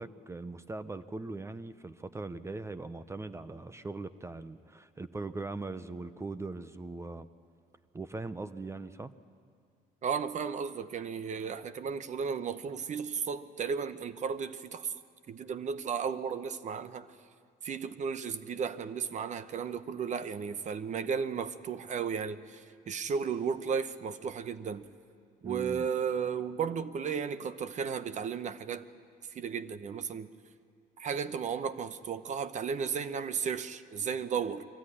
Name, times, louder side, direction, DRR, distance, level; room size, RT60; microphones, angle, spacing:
voice 1, 0.0-7.3 7.9-9.1 25.4-25.9, right 3 dB, 15° right, 0.6 m, -40 dB
voice 2, 10.0-14.9 15.3-17.1 17.6-24.9 25.4-28.9 29.3-30.3 31.0-34.7, right 6 dB, 45° right, 0.8 m, -34 dB
22.5 x 15.5 x 9.9 m
cardioid pair, 110°, 17 cm